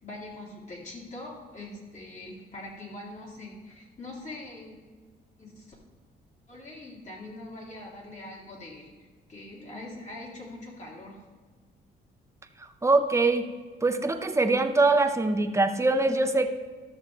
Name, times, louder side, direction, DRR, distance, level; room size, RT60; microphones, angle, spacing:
voice 1, 0.0-4.7 5.4-5.8 6.5-11.2, left 2 dB, 40° left, -3 dB, 3.2 m, -43 dB
voice 2, 12.6-13.4 13.8-16.5, right 3 dB, 15° right, 7 dB, 0.8 m, -23 dB
13.0 x 6.7 x 3.4 m, 1.4 s
cardioid pair, 90°, 20 cm